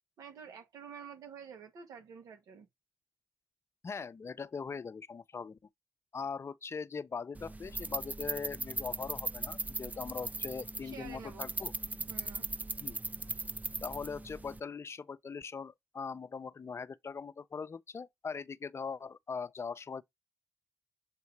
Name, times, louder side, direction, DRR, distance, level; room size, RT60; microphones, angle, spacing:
voice 1, 0.2-2.7 10.8-11.5 12.1-12.5, right 7 dB, 80° right, 1.7 m, -49 dB
voice 2, 3.8-5.6 6.1-11.7 12.8-13.0 13.8-20.0, left 5 dB, 50° left, 0.7 m, -41 dB
sound 1, 7.3-14.6, right 2 dB, 25° right, 0.7 m, -39 dB
7.4 x 2.7 x 4.6 m
supercardioid pair, 45°, 6 cm